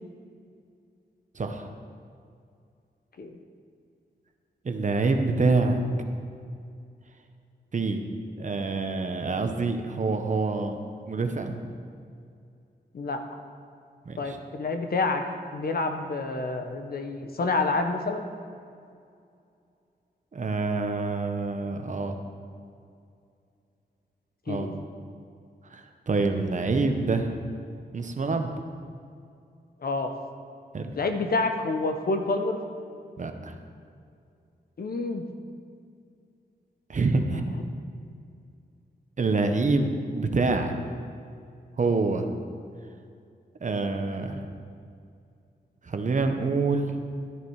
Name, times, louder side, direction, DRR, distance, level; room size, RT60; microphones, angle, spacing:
voice 1, 1.3-1.7 4.6-5.8 7.7-8.0 8.4-10.8 11.1-11.6 14.1-14.4 20.3-22.2 24.5-24.7 25.7-27.3 27.9-28.5 30.7-30.9 33.2-33.6 36.9-37.6 39.2-40.7 41.8-42.2 43.6-44.4 45.8-46.9, right 3 dB, 45° right, 6 dB, 1.1 m, -26 dB
voice 2, 14.2-15.2 15.5-18.3 24.5-24.7 29.8-30.1 31.0-32.6 34.8-35.2 37.3-37.4, left 3 dB, 65° left, 6 dB, 1.1 m, -28 dB
13.0 x 10.5 x 4.8 m, 2.4 s
wide cardioid pair, 95°, 17 cm